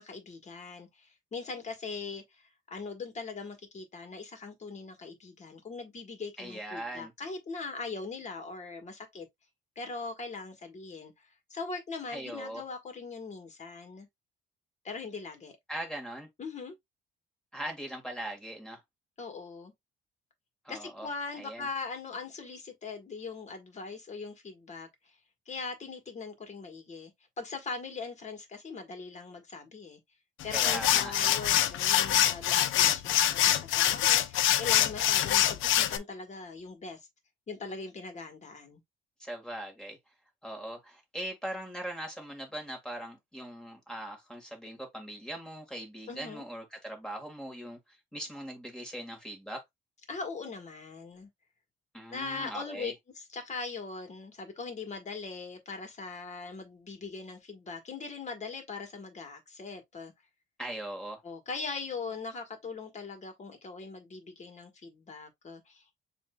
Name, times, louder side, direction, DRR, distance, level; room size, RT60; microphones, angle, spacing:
voice 1, 0.0-2.4 2.7-9.3 9.7-11.1 11.5-14.1 14.8-15.5 16.4-16.7 19.2-19.7 20.7-24.9 25.5-27.1 27.4-30.0 30.4-37.1 37.5-38.8 46.1-46.5 50.1-51.3 52.1-60.1 61.2-65.9, left 4 dB, 35° left, 1.5 m, -41 dB
voice 2, 6.4-7.1 12.1-12.6 15.7-16.3 17.5-18.8 20.6-21.1 21.4-21.7 30.5-31.3 39.2-40.0 40.4-49.6 51.9-52.9 60.6-61.2, right 1 dB, 5° left, 1.9 m, -40 dB
sound 1, 30.4-36.0, left 12 dB, 75° left, 0.6 m, -25 dB
7.0 x 2.7 x 2.3 m
cardioid pair, 120°, 20 cm